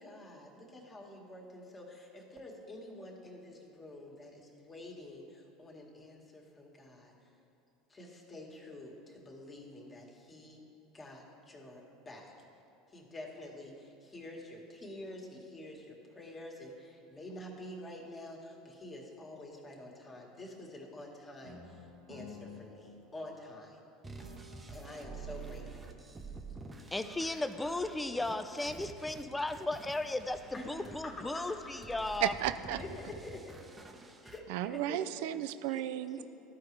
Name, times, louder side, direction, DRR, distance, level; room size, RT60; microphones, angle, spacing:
voice 1, 0.0-7.1 7.9-10.6 10.9-12.3 12.9-23.8 24.7-25.8 30.5-32.0 32.7-33.6 34.2-35.1 35.7-35.8 36.1-36.2, left 1 dB, 25° left, -1 dB, 1.6 m, -48 dB
sound 1, 21.4-23.8 24.2-26.4, left 2 dB, 90° right, 1.4 m, -53 dB
sound 2, 24.0-34.4, right 4 dB, 20° right, 0.7 m, -49 dB
voice 2, 26.9-32.3, left 2 dB, 10° left, 10 dB, 0.5 m, -35 dB
voice 3, 32.2-32.8 34.5-36.2, right 13 dB, 70° right, 12 dB, 0.3 m, -33 dB
13.5 x 4.7 x 3.2 m, 2.7 s
hypercardioid pair, 85°, 0 cm